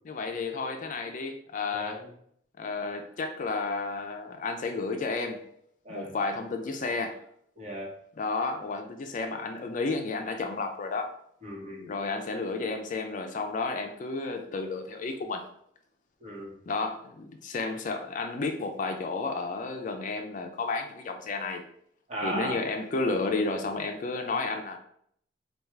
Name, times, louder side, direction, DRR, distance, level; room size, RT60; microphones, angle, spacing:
voice 1, 0.0-2.0 2.6-5.4 5.9-7.2 8.2-11.1 11.9-15.4 16.7-21.7 22.2-24.8, left 3 dB, 45° left, 5 dB, 0.4 m, -32 dB
voice 2, 1.7-2.1 5.8-6.2 7.6-7.9 11.4-11.9 16.2-16.5 22.1-22.6, right 1 dB, 40° right, -3 dB, 1.1 m, -36 dB
3.4 x 2.3 x 4.4 m, 0.68 s
head